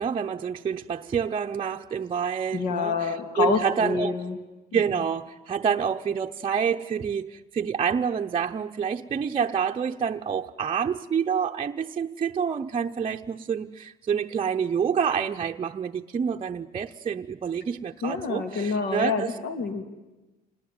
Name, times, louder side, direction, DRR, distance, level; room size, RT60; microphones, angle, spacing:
voice 1, 0.0-4.1 4.7-19.3, right 7 dB, 35° right, 0.8 m, -28 dB
voice 2, 2.5-4.4 4.7-5.0 18.0-19.8, left 5 dB, 65° left, 2.9 m, -27 dB
27.0 x 19.5 x 9.5 m
cardioid pair, 110°, 17 cm